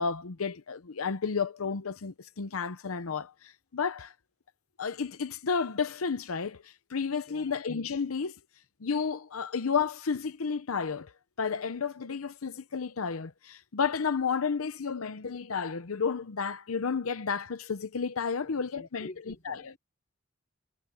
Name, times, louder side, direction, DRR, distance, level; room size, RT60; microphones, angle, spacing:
voice 1, 0.0-4.1 4.8-8.3 8.8-11.1 11.4-19.7, left 5 dB, 90° left, 0.7 m, -32 dB
voice 2, 7.3-7.6 18.4-19.8, left 1 dB, 40° left, 4.0 m, -49 dB
head